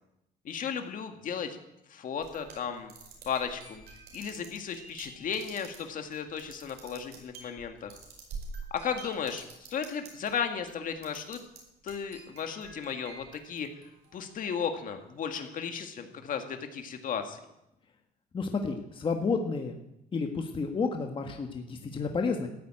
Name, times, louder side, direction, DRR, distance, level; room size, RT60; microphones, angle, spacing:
voice 1, 0.4-1.6 1.9-2.9 3.3-3.8 4.1-8.0 8.7-9.4 9.7-11.4 11.8-13.7 14.1-17.4, left 7 dB, 55° left, 5 dB, 2.1 m, -35 dB
sound 1, 2.2-10.3 10.6-11.6 11.9-14.3, right 4 dB, 70° right, 5.1 m, -47 dB
voice 2, 18.3-19.8 20.1-22.5, left 4 dB, 30° left, 3 dB, 1.6 m, -31 dB
14.5 x 8.8 x 9.0 m, 0.84 s
cardioid pair, 110°, 17 cm